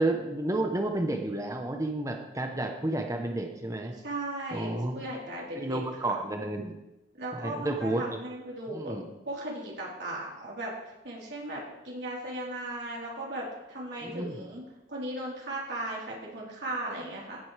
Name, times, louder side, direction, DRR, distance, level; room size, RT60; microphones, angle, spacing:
voice 1, 0.0-3.9 4.5-5.0 5.5-6.8 7.3-8.0 8.7-9.1 14.0-14.5, right 2 dB, 15° right, 4 dB, 0.9 m, -31 dB
voice 2, 3.9-5.8 7.1-8.9 9.3-10.7 11.0-14.6 14.9-17.4, right 1 dB, 70° right, -5 dB, 3.9 m, -37 dB
16.0 x 7.8 x 3.4 m, 0.96 s
head